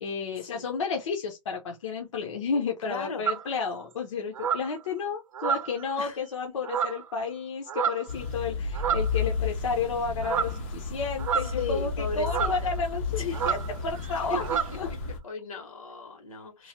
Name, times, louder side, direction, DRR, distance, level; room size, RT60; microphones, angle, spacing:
voice 1, 0.0-14.5 14.8-14.9, left 5 dB, 65° left, 0.7 m, -32 dB
voice 2, 2.8-3.3 6.0-6.2 11.6-12.7 13.1-13.4 14.3-14.4 15.2-16.7, left 3 dB, 90° left, 1.6 m, -36 dB
sound 1, 3.3-3.5 4.4-4.7 5.3-5.9 6.6-7.1 7.7-8.1 8.7-9.2 10.2-10.6 11.2-11.8 12.3-12.6 13.3-13.7 13.9-14.1 14.4-14.8, right 8 dB, 75° right, 0.5 m, -29 dB
sound 2, 8.1-15.2, left 4 dB, 20° left, 0.4 m, -32 dB
3.1 x 2.1 x 2.7 m
hypercardioid pair, 160°, 17 cm